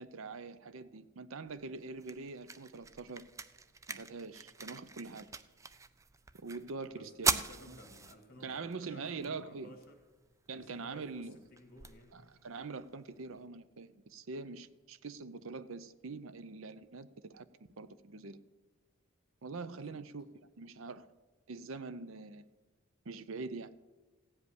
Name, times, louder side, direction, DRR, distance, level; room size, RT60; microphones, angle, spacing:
voice 1, 0.0-3.2 3.9-5.3 6.4-7.4 7.7-7.8 8.4-9.7 10.5-11.4 12.1-17.5 17.8-18.4 19.4-20.2 20.6-21.1 21.5-22.4 23.1-23.7, right 4 dB, 65° right, 14 dB, 0.6 m, -44 dB
sound 1, 1.5-13.5, right 5 dB, 15° right, 0.3 m, -42 dB
voice 2, 6.9-10.0 10.5-12.2 19.6-20.0, left 1 dB, 45° left, 3 dB, 2.3 m, -56 dB
15.5 x 5.3 x 9.6 m, 1.2 s
head